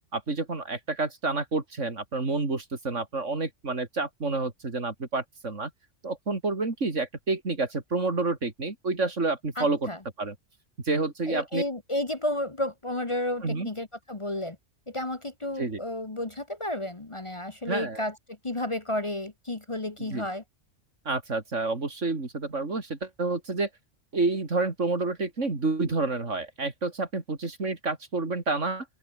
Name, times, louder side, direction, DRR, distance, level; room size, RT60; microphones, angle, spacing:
voice 1, 0.1-5.7 6.0-9.9 10.2-10.4 10.9-11.6 13.4-13.7 15.6-15.8 17.7-18.0 20.0-20.3 21.1-23.7 24.1-28.9, right 3 dB, 70° right, 3.6 m, -29 dB
voice 2, 9.6-10.0 11.3-14.6 14.9-20.4, left 1 dB, 25° left, 1.3 m, -32 dB
open air
omnidirectional pair, 1.3 m